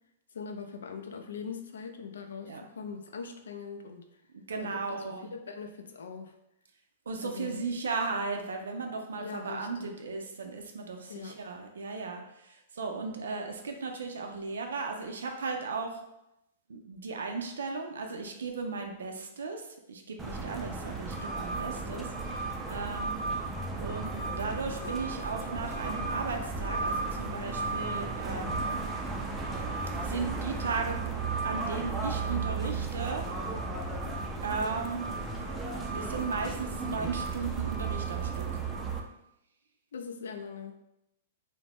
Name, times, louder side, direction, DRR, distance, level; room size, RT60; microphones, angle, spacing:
voice 1, 0.3-4.1 4.6-6.3 7.2-7.7 9.2-10.0 11.1-11.4 39.9-40.7, left 5 dB, 85° left, 6 dB, 0.3 m, -41 dB
voice 2, 4.5-5.3 7.1-16.0 16.7-19.6 19.9-22.1 22.3-23.2 23.8-28.6 30.0-31.1 31.4-33.3 34.4-35.0 35.9-38.5, right 4 dB, 90° right, 4 dB, 0.4 m, -36 dB
sound 1, 20.2-39.0, right 4 dB, 15° right, 0.4 m, -34 dB
2.5 x 2.1 x 3.3 m, 0.83 s
hypercardioid pair, 135°, 0 cm